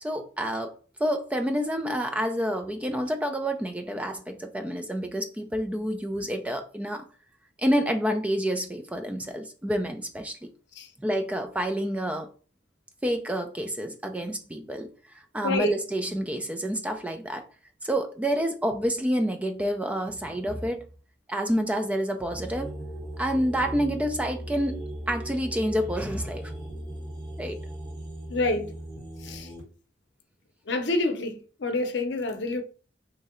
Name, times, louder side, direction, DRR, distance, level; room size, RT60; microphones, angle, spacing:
voice 1, 0.0-7.0 7.6-10.5 11.0-12.3 13.0-14.9 15.3-17.5 17.8-20.9 21.3-22.7 23.2-24.8 25.1-26.5 27.4-27.6, equal, 10° right, 0.3 m, -28 dB
sound 1, 22.3-29.6, right 1 dB, 25° right, 1.5 m, -38 dB
voice 2, 28.3-28.7 29.2-29.5 30.7-31.3 31.6-32.6, left 2 dB, 90° left, 0.6 m, -27 dB
3.1 x 2.7 x 3.6 m
head